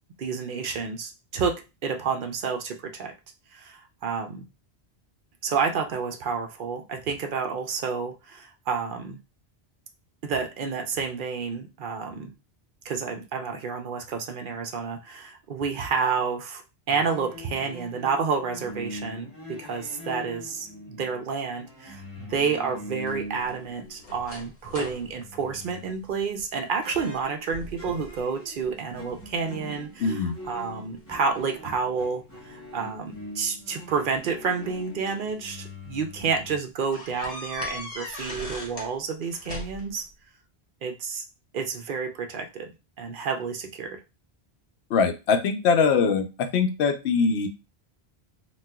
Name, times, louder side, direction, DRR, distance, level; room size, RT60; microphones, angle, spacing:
voice 1, 0.2-3.1 3.5-4.5 5.4-9.2 10.2-12.3 12.8-16.6 16.9-30.2 30.5-40.0 40.8-41.2 41.5-42.7 43.0-44.0, right 5 dB, 60° right, 5 dB, 0.6 m, -30 dB
sound 1, 16.9-24.4 24.7-26.3 26.8-36.6, left 2 dB, 15° left, 0.5 m, -43 dB
sound 2, 23.0-26.5 26.9-27.2 27.5-28.2 28.6-29.4 30.0-31.4 32.6-32.7 33.9-35.3 35.8-36.0 36.3-36.4 36.9-38.9 39.2-40.0, left 1 dB, 35° left, 0.9 m, -40 dB
voice 2, 30.0-30.3 44.9-47.5, left 5 dB, 80° left, 7 dB, 0.9 m, -22 dB
4.1 x 2.2 x 2.3 m, 0.27 s
omnidirectional pair, 1.1 m